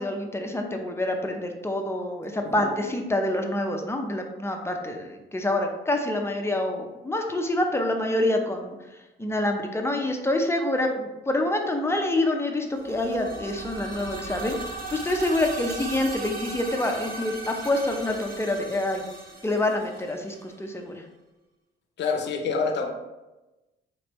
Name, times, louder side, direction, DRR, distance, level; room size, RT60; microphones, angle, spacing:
voice 1, 0.0-19.1 19.4-21.0, left 1 dB, 10° left, 3 dB, 0.6 m, -27 dB
sound 1, 12.7-20.5, right 2 dB, 45° right, 0.9 m, -38 dB
voice 2, 22.0-22.9, left 4 dB, 60° left, 3 dB, 0.7 m, -26 dB
4.3 x 3.2 x 3.0 m, 1.1 s
cardioid pair, 90°, 20 cm